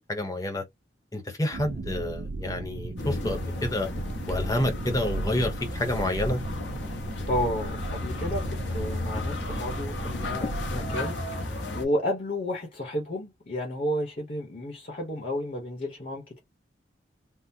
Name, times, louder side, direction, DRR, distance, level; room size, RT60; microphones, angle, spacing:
voice 1, 0.1-0.6 1.1-3.9 4.3-6.4, left 1 dB, 20° left, 0.8 m, -29 dB
sound 1, 1.5-10.9, right 2 dB, 85° right, 0.6 m, -36 dB
sound 2, 3.0-11.9, left 2 dB, 85° left, 0.9 m, -34 dB
voice 2, 7.3-16.4, equal, 45° left, 0.9 m, -32 dB
3.6 x 2.0 x 2.7 m
head